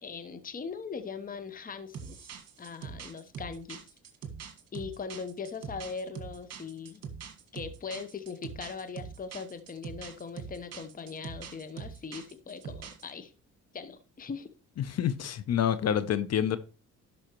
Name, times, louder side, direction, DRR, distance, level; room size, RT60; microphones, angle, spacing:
voice 1, 0.0-2.3 2.6-3.8 4.7-7.0 7.5-13.3 13.7-14.5, left 5 dB, 30° left, 0.9 m, -40 dB
sound 1, 1.9-13.1, right 6 dB, 55° right, 1.7 m, -43 dB
voice 2, 14.8-16.6, left 9 dB, 60° left, 0.7 m, -28 dB
11.5 x 5.7 x 3.0 m
cardioid pair, 90°, 30 cm